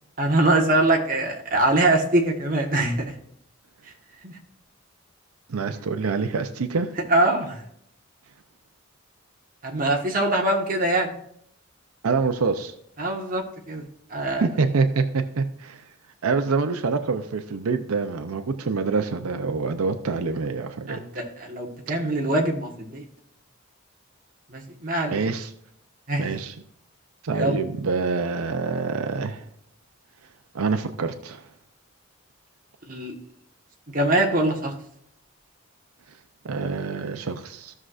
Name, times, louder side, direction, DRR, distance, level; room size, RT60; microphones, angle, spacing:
voice 1, 0.2-3.1 4.2-4.4 7.1-7.6 9.6-11.1 13.0-13.8 14.1-14.4 20.9-23.0 24.5-25.2 26.1-26.3 27.3-27.6 32.9-33.1 33.9-34.7, right 2 dB, 40° right, 1 dB, 1.3 m, -23 dB
voice 2, 5.5-6.9 12.0-12.7 14.4-15.9 16.2-21.0 25.1-25.5 26.2-26.6 27.2-29.5 30.5-31.5 36.1-36.2 36.4-37.7, right 4 dB, 90° right, 8 dB, 0.6 m, -26 dB
15.5 x 6.2 x 2.5 m, 0.71 s
head